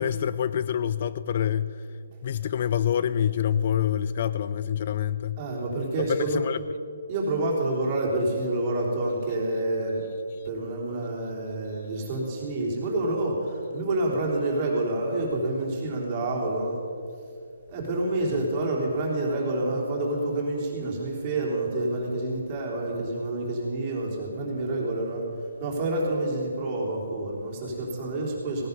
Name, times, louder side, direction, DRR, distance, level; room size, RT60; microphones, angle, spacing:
voice 1, 0.0-1.9 2.2-5.4 6.1-6.6 10.4-10.5 18.3-18.4, left 9 dB, 40° left, 15 dB, 0.3 m, -26 dB
voice 2, 5.4-6.4 7.1-10.0 10.4-16.8 17.7-25.2 25.6-28.7, right 2 dB, 25° right, -2 dB, 3.5 m, -28 dB
17.0 x 11.0 x 5.4 m, 2.4 s
hypercardioid pair, 160°, 0 cm